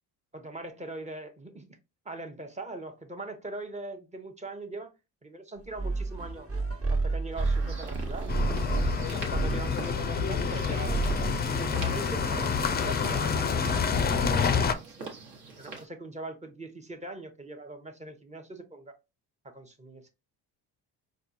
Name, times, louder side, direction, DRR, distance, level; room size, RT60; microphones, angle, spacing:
voice 1, 0.3-1.7 2.0-4.9 5.2-6.5 6.9-8.3 8.9-15.1 15.6-18.9 19.4-20.0, right 2 dB, 15° right, 0.7 m, -41 dB
sound 1, 5.7-11.5, right 3 dB, 35° right, 1.1 m, -31 dB
sound 2, 7.4-15.9, right 4 dB, 60° right, 1.2 m, -45 dB
sound 3, 8.3-14.7, left 6 dB, 25° left, 0.4 m, -28 dB
4.4 x 2.3 x 2.6 m
supercardioid pair, 70°, 43 cm